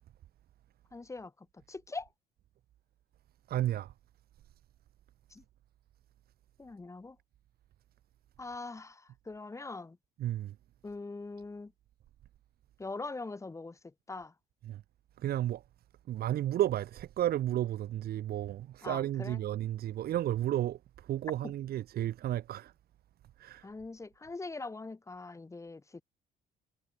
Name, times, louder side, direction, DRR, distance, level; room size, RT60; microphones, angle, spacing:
voice 1, 0.9-1.3 1.7-2.1 6.6-7.1 8.4-9.0 9.3-10.0 10.8-11.7 12.8-13.7 14.1-14.3 18.8-19.4 23.6-25.8, left 3 dB, 15° left, 3.3 m, -42 dB
voice 2, 3.5-3.9 10.2-10.5 14.6-14.8 15.2-15.6 16.1-20.8 21.1-22.7 23.4-23.6, right 12 dB, 65° right, 5.4 m, -32 dB
cardioid pair, 110°, 17 cm